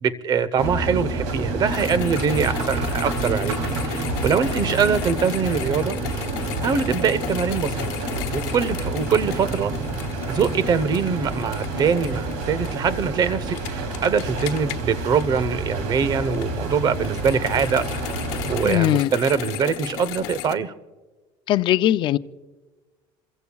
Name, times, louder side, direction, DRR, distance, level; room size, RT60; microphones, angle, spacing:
voice 1, 0.0-3.6 3.8-6.3 6.6-7.9 8.3-9.7 10.3-20.7, right 6 dB, 40° right, 1.0 m, -23 dB
sound 1, 0.6-18.7, right 3 dB, 75° right, 3.2 m, -28 dB
sound 2, 1.7-15.8 16.2-20.5, left 14 dB, 80° left, 1.0 m, -35 dB
voice 2, 18.6-19.1 21.5-22.2, left 13 dB, 50° left, 0.5 m, -19 dB
28.0 x 15.5 x 2.4 m
cardioid pair, 125°, 11 cm